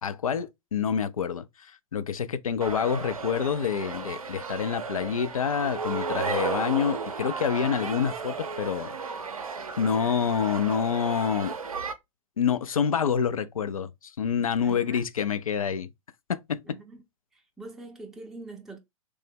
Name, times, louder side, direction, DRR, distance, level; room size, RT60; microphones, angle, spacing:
voice 1, 0.0-9.0 9.8-11.5 12.4-15.9 16.3-16.8, left 7 dB, 80° left, 0.4 m, -27 dB
sound 1, 2.6-11.9, right 5 dB, 80° right, 0.5 m, -34 dB
voice 2, 14.6-15.1 16.7-17.0 17.3-18.8, right 3 dB, ahead, 0.4 m, -44 dB
3.2 x 2.0 x 3.4 m
figure-of-eight pair, 105°, 18 cm